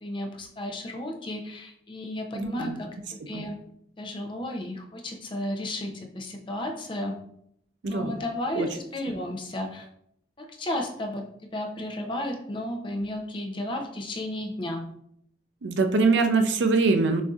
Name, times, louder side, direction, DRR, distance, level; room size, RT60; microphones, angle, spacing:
voice 1, 0.0-3.0 3.3-3.6 4.0-7.2 7.9-9.9 10.4-14.9, left 1 dB, 30° left, 3 dB, 0.5 m, -33 dB
voice 2, 2.3-2.8 3.3-3.5 7.8-8.2 8.5-8.7 15.6-17.2, right 3 dB, 80° right, 6 dB, 0.5 m, -23 dB
6.3 x 2.6 x 2.4 m, 0.72 s
head